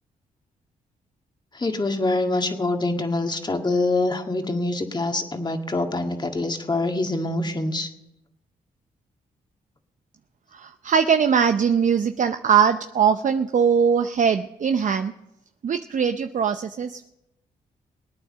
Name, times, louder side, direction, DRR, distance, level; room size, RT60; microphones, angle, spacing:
voice 1, 1.5-7.9, left 2 dB, 25° left, 5 dB, 1.9 m, -25 dB
voice 2, 10.5-15.1 15.6-17.1, right 7 dB, 50° right, 8 dB, 0.6 m, -21 dB
19.5 x 9.2 x 6.6 m, 0.91 s
supercardioid pair, 55°, 16 cm